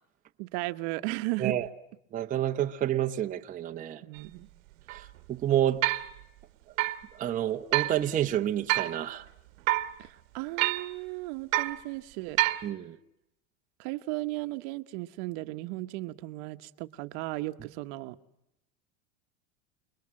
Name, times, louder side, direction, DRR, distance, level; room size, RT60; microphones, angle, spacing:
voice 1, 0.4-1.5 4.0-4.5 10.0-12.4 13.8-18.2, right 20 dB, 55° right, 1.2 m, -35 dB
voice 2, 2.1-4.0 4.9-5.8 7.1-9.3 12.6-13.0, right 11 dB, 20° right, 0.9 m, -29 dB
sound 1, 4.2-4.3 4.9-5.0 5.8-6.1 6.8-7.0 7.7-8.0 8.7-9.0 9.7-9.9 10.6-10.9 11.5-11.8 12.4-12.7, right 18 dB, 75° right, 1.4 m, -27 dB
30.0 x 21.0 x 7.6 m
supercardioid pair, 145°, 40 cm